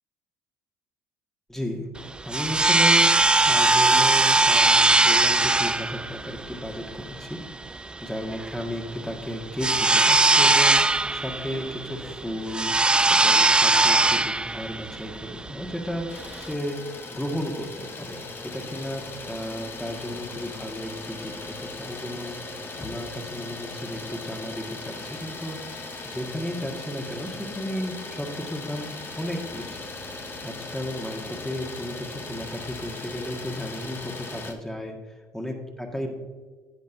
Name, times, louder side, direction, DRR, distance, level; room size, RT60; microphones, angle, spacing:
voice 1, 1.5-1.9 2.2-3.1 3.4-7.4 8.0-10.8 11.1-12.7 13.1-16.8 17.1-22.4 22.8-28.9 29.2-29.8 30.4-36.1, equal, 5° left, 2 dB, 1.7 m, -34 dB
sound 1, 2.0-16.5, right 2 dB, 10° right, 0.3 m, -21 dB
Idling, 16.1-34.5, left 3 dB, 30° left, 1.1 m, -38 dB
10.5 x 8.2 x 2.7 m, 1.4 s
hypercardioid pair, 70°, 7 cm